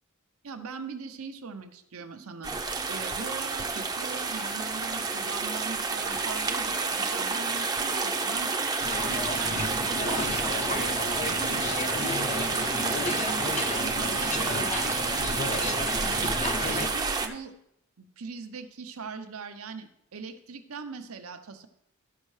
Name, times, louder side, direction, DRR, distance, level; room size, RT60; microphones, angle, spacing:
voice 1, 0.4-2.5 2.9-8.5 9.0-10.4 10.7-14.9 15.4-16.3 16.6-17.5 18.0-21.7, right 5 dB, 75° right, 8 dB, 0.8 m, -40 dB
wild creek in the woods, 2.4-17.3, right 4 dB, 20° right, 0.6 m, -29 dB
sound 1, 8.8-16.9, left 2 dB, 35° left, 0.6 m, -33 dB
13.5 x 5.4 x 3.2 m, 0.76 s
head